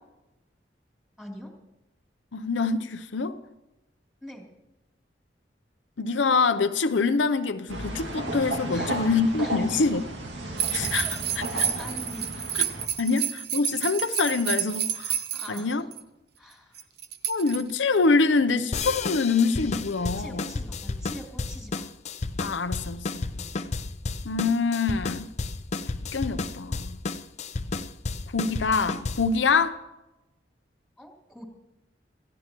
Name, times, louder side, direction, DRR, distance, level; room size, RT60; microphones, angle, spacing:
voice 1, 1.2-1.5 4.2-4.5 8.7-9.1 9.4-10.0 10.9-12.5 13.0-13.1 15.3-15.9 16.4-16.8 20.0-21.9 23.2-23.5 31.0-31.5, left 1 dB, ahead, 3.1 m, -43 dB
voice 2, 2.3-3.4 6.0-10.0 10.7-11.1 13.0-15.2 15.5-15.8 17.3-20.5 22.4-23.3 24.2-25.3 26.1-27.0 28.3-29.8, left 4 dB, 85° left, 0.7 m, -25 dB
sound 1, 7.7-12.9, right 1 dB, 80° right, 2.2 m, -34 dB
sound 2, 10.6-16.0 16.8-18.0, right 9 dB, 60° right, 0.9 m, -30 dB
sound 3, 18.7-29.4, left 3 dB, 35° left, 0.6 m, -32 dB
27.5 x 15.5 x 3.1 m
head